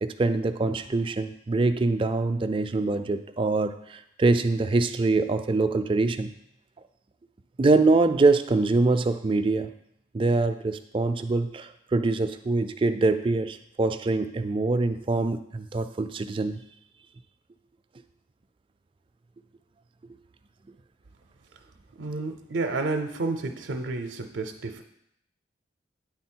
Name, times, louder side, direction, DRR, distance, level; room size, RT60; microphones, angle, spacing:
voice 1, 0.0-6.3 7.6-9.7 10.1-16.6, right 3 dB, 25° right, 8 dB, 0.3 m, -24 dB
voice 2, 21.9-24.8, right 3 dB, 80° right, 5 dB, 0.5 m, -30 dB
9.2 x 3.8 x 4.4 m, 0.77 s
head